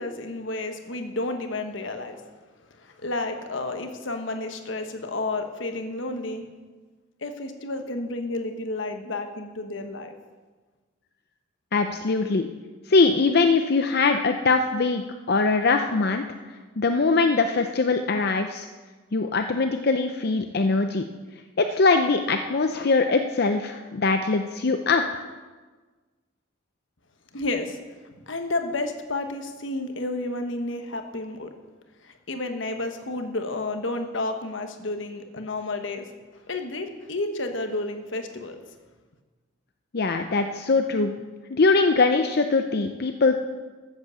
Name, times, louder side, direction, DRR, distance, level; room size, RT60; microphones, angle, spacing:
voice 1, 0.0-2.2 2.7-6.4 7.2-10.1 27.3-27.8 28.3-31.5 32.0-36.1 36.3-38.6, left 2 dB, 70° left, 6 dB, 1.3 m, -31 dB
voice 2, 11.7-12.5 12.9-15.0 15.3-16.2 16.8-18.7 19.1-21.0 21.6-25.2 39.9-41.1 41.5-43.4, left 3 dB, 55° left, 6 dB, 0.6 m, -22 dB
13.5 x 8.2 x 7.0 m, 1.3 s
head